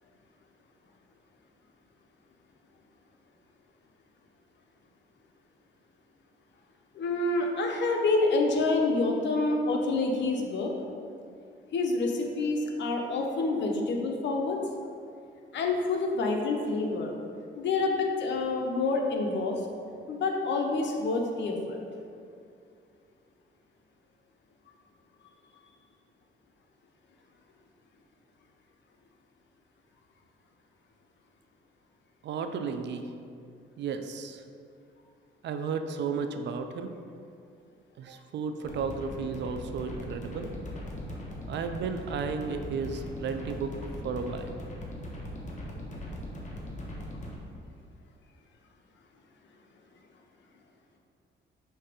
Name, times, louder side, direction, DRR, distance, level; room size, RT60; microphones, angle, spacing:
voice 1, 6.9-10.7 11.7-14.6 15.5-17.1 17.6-19.6 20.1-21.8, left 3 dB, 65° left, 1 dB, 0.9 m, -27 dB
voice 2, 32.2-33.1 33.8-34.4 35.4-36.9 38.0-40.5 41.5-43.8 44.0-44.6, right 5 dB, 65° right, 8 dB, 0.5 m, -33 dB
sound 1, 38.6-47.4, left 1 dB, 40° left, 1.2 m, -40 dB
5.7 x 3.3 x 5.1 m, 2.4 s
cardioid pair, 90°, 20 cm